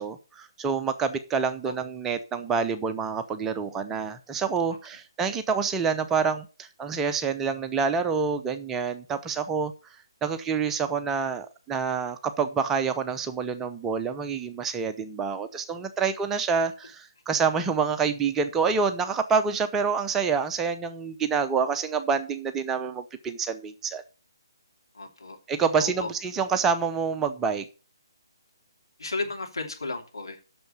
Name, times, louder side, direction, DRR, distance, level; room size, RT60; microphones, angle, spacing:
voice 1, 0.0-9.7 10.2-24.0 25.5-27.6, right 5 dB, 15° right, 8 dB, 0.7 m, -27 dB
voice 2, 24.9-25.4 25.8-26.1 29.0-30.4, left 3 dB, 75° left, 3 dB, 2.9 m, -33 dB
7.8 x 6.6 x 8.0 m, 0.34 s
figure-of-eight pair, 140°, 2 cm